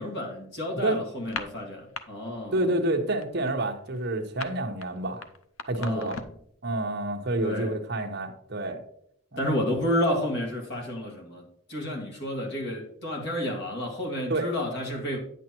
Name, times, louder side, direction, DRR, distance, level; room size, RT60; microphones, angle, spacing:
voice 1, 0.0-2.6 5.8-6.2 7.4-7.7 9.4-15.2, left 1 dB, 55° left, 0 dB, 2.1 m, -30 dB
sound 1, 1.2-2.0 2.3-2.7 2.9-6.5, left 5 dB, 80° left, 0.7 m, -39 dB
voice 2, 2.5-5.3 5.6-6.2 6.6-8.8 9.3-9.5 14.3-14.5, right 2 dB, 50° right, 4 dB, 1.0 m, -28 dB
9.7 x 8.1 x 3.0 m, 0.69 s
head